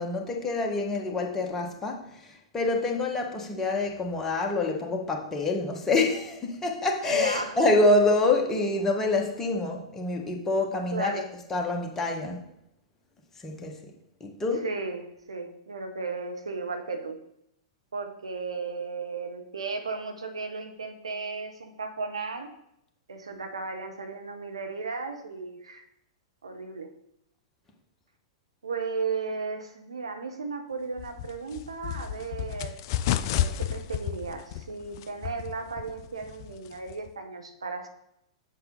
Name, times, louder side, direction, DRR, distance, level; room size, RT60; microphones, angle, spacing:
voice 1, 0.0-2.0 2.5-11.2 11.5-12.4 13.4-13.7 14.2-14.7, left 2 dB, 15° left, 1 dB, 1.4 m, -26 dB
voice 2, 7.1-7.6 10.9-11.3 14.5-17.2 17.9-22.5 23.1-25.8 26.4-26.9 28.6-32.8 33.1-37.9, right 4 dB, 80° right, 6 dB, 1.1 m, -35 dB
sound 1, 31.0-37.1, left 11 dB, 50° left, 0.5 m, -32 dB
7.6 x 6.0 x 3.9 m, 0.78 s
figure-of-eight pair, 105°, 3 cm